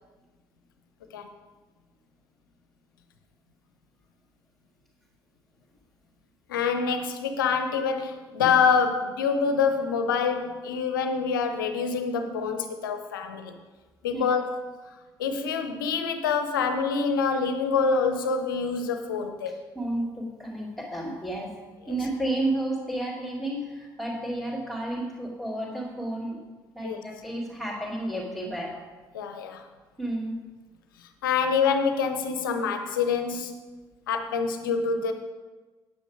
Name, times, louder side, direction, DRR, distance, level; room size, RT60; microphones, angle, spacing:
voice 1, 6.5-13.5 14.0-14.4 15.2-19.6 21.8-21.9 26.8-27.0 29.1-29.6 31.2-33.6 34.1-35.1, left 5 dB, 75° left, 7 dB, 0.7 m, -26 dB
voice 2, 19.7-21.5 21.9-26.4 26.7-28.7 30.0-30.3, right 1 dB, ahead, -6 dB, 2.6 m, -31 dB
9.0 x 8.5 x 4.8 m, 1.3 s
figure-of-eight pair, 45°, 11 cm